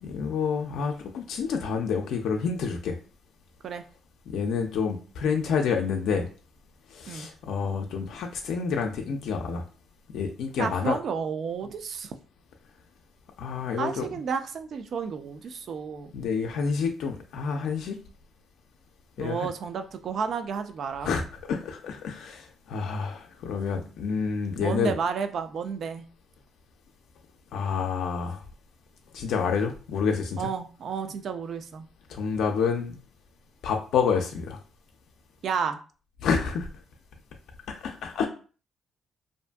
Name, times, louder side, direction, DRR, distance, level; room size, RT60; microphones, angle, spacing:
voice 1, 0.0-3.0 4.3-6.3 6.9-9.7 10.1-11.0 13.4-14.1 16.1-18.0 19.2-19.5 21.0-21.2 21.5-24.9 27.5-28.4 29.1-30.5 32.1-33.0 33.6-34.6 36.2-36.7 37.7-38.3, left 6 dB, 80° left, 3 dB, 0.3 m, -28 dB
voice 2, 10.6-12.1 13.8-16.1 19.2-21.1 24.6-26.0 30.4-31.9 35.4-35.8, right 6 dB, 60° right, 9 dB, 0.4 m, -31 dB
2.6 x 2.4 x 2.2 m, 0.38 s
cardioid pair, 90°, 0 cm